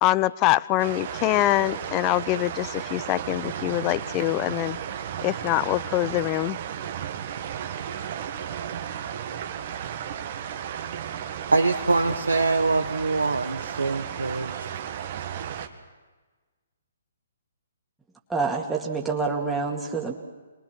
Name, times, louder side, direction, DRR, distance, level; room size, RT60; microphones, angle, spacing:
voice 1, 0.0-4.8 5.2-6.6, left 16 dB, 25° left, 19 dB, 0.6 m, -24 dB
sound 1, 0.8-15.7, right 9 dB, 45° right, 1.8 m, -34 dB
voice 2, 11.5-14.8, right 3 dB, 80° right, 3 dB, 1.2 m, -24 dB
voice 3, 18.3-20.1, right 4 dB, 5° right, -2 dB, 2.1 m, -27 dB
27.0 x 22.0 x 6.0 m, 1.3 s
figure-of-eight pair, 130°, 0 cm